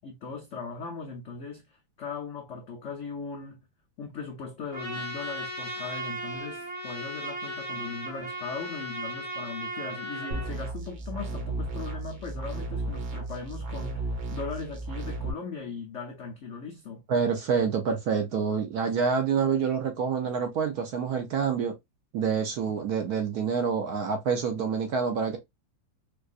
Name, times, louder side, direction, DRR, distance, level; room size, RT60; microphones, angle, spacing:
voice 1, 0.0-3.6 4.0-17.0, left 4 dB, 85° left, 0.6 m, -39 dB
Trumpet, 4.7-10.5, right 1 dB, 30° right, 0.9 m, -36 dB
sound 1, 10.3-15.3, right 2 dB, 90° right, 1.9 m, -34 dB
voice 2, 17.1-21.8 22.1-25.4, right 6 dB, 65° right, 1.0 m, -27 dB
4.5 x 2.4 x 2.4 m
omnidirectional pair, 2.1 m